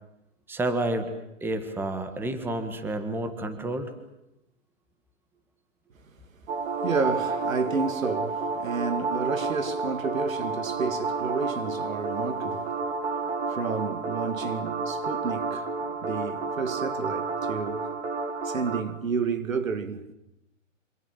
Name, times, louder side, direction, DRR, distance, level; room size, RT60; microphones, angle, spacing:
voice 1, 0.5-1.1 1.4-3.9, right 2 dB, 5° right, 1.6 m, -30 dB
sound 1, 6.5-18.8, right 4 dB, 50° right, 3.5 m, -30 dB
voice 2, 6.8-12.7 13.2-17.9 18.4-20.1, right 5 dB, 85° right, 2.5 m, -31 dB
27.5 x 25.5 x 7.6 m
hypercardioid pair, 150°, 39 cm